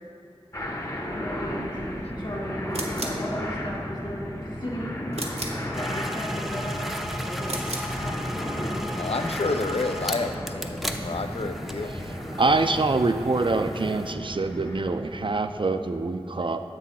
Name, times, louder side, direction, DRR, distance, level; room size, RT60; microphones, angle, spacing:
sound 1, 0.5-15.4, equal, 30° left, 0.8 m, -34 dB
voice 1, 1.0-4.3 4.6-5.0 5.8-6.8 7.2-7.5 8.0-8.7, equal, 45° left, -4 dB, 1.6 m, -36 dB
sound 2, 2.7-3.3 5.1-5.7 7.4-8.0, right 1 dB, 80° right, 0.8 m, -34 dB
sound 3, 5.7-14.1, equal, ahead, 0.5 m, -36 dB
voice 2, 9.0-11.9, left 3 dB, 70° left, 7 dB, 0.4 m, -29 dB
voice 3, 11.8-16.6, right 3 dB, 50° right, 8 dB, 0.4 m, -25 dB
7.4 x 6.1 x 4.2 m, 2.8 s
wide cardioid pair, 45°, 11 cm